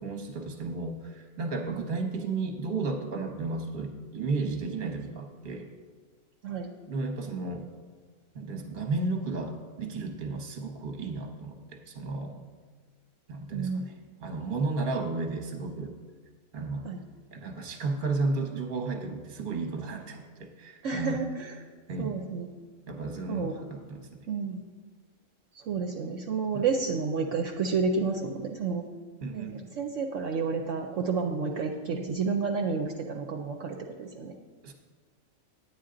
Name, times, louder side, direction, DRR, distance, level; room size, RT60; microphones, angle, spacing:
voice 1, 0.0-5.7 6.9-7.7 8.3-12.5 13.3-13.9 14.2-15.9 16.5-16.9 17.3-21.2 21.9-22.1 22.9-24.2 26.5-26.7 29.2-29.6 34.6-34.7, right 3 dB, 40° right, 4 dB, 1.1 m, -33 dB
voice 2, 13.5-13.8 16.8-17.0 20.8-21.6 22.0-22.5 23.3-23.5 24.3-24.6 25.5-28.8 29.3-34.3, right 5 dB, 65° right, 3 dB, 1.0 m, -30 dB
9.8 x 9.4 x 3.8 m, 1.4 s
omnidirectional pair, 1.5 m